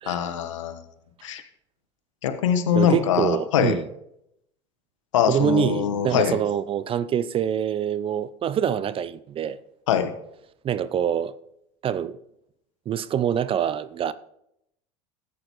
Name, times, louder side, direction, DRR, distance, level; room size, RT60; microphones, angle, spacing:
voice 1, 0.1-0.8 1.2-1.4 2.2-3.8 5.1-6.4 9.9-10.1, left 9 dB, 80° left, 1.0 m, -23 dB
voice 2, 2.7-3.9 5.3-9.6 10.6-11.3 11.8-12.2 12.9-14.1, right 9 dB, 35° right, 0.5 m, -25 dB
14.0 x 8.5 x 3.1 m
hypercardioid pair, 85°, 16 cm